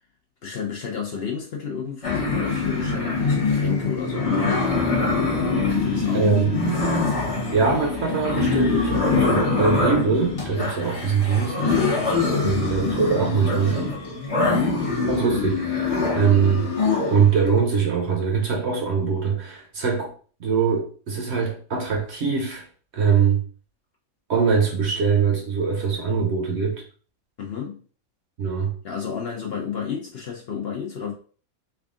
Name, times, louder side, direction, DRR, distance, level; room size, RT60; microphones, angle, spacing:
voice 1, 0.4-4.8 5.7-6.4 12.4-12.8 14.4-14.8 27.4-27.8 28.8-31.1, left 7 dB, 55° left, 0.8 m, -31 dB
sound 1, 2.0-17.4, left 3 dB, 25° left, 1.0 m, -24 dB
voice 2, 6.1-6.6 7.5-11.7 12.4-13.9 15.1-16.7 17.1-20.1 20.4-22.6 22.9-23.4 24.3-26.8 28.4-28.7, right 6 dB, 55° right, 0.9 m, -22 dB
3.5 x 2.4 x 3.6 m
omnidirectional pair, 1.5 m